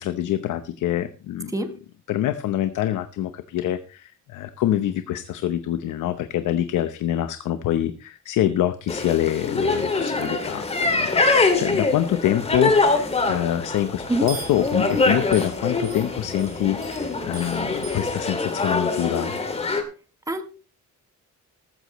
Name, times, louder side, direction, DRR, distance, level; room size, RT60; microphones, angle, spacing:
voice 1, 0.0-1.7 2.1-11.1 11.6-19.4, left 12 dB, 85° left, 10 dB, 0.9 m, -25 dB
voice 2, 1.5-1.7 14.1-14.3 20.3-20.4, right 2 dB, 10° right, 8 dB, 1.2 m, -24 dB
sound 1, 8.9-19.8, left 3 dB, 20° left, 2.2 m, -24 dB
sound 2, 10.9-18.2, right 4 dB, 45° right, 5.9 m, -43 dB
14.5 x 13.5 x 3.1 m, 0.35 s
cardioid pair, 160°, 30 cm